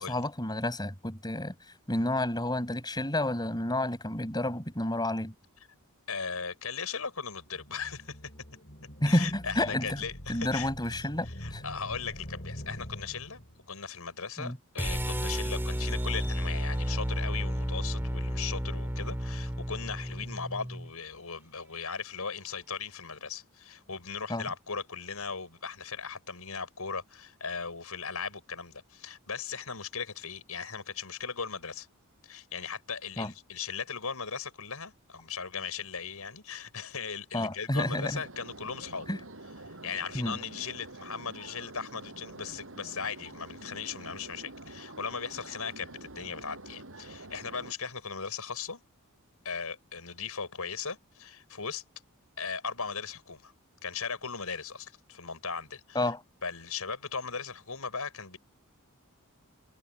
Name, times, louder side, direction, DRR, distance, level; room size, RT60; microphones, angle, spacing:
voice 1, 0.0-1.5 1.9-5.3 9.0-10.0 10.3-11.6 14.4-14.6 24.3-24.5 33.2-33.3 37.3-38.2 39.1-39.2 40.1-40.4 55.9-56.2, left 1 dB, 20° left, 5.4 m, -30 dB
voice 2, 6.1-8.3 9.1-13.4 13.7-31.9 32.2-39.1 39.6-48.8 49.4-51.8 52.4-53.5 53.8-56.1 56.4-58.4, left 6 dB, 80° left, 5.8 m, -38 dB
sound 1, 7.4-13.7, equal, 45° left, 7.6 m, -44 dB
sound 2, 14.8-20.9, equal, 10° right, 3.2 m, -32 dB
sound 3, 37.8-47.7, right 2 dB, 65° right, 6.8 m, -47 dB
head